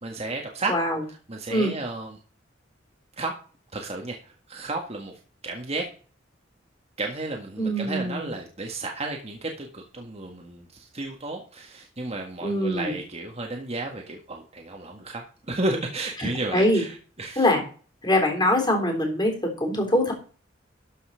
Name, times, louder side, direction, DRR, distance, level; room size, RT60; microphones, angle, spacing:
voice 1, 0.0-0.7 1.3-2.2 3.2-3.3 3.7-4.2 4.5-5.1 5.4-5.8 7.0-10.7 10.9-17.5, right 2 dB, 35° right, 2 dB, 1.7 m, -32 dB
voice 2, 0.7-1.0 1.5-1.7 7.6-8.3 12.4-12.9 16.2-16.8 17.4-17.6 18.0-20.1, left 1 dB, 20° left, 2 dB, 3.7 m, -23 dB
13.0 x 5.6 x 5.7 m, 0.39 s
head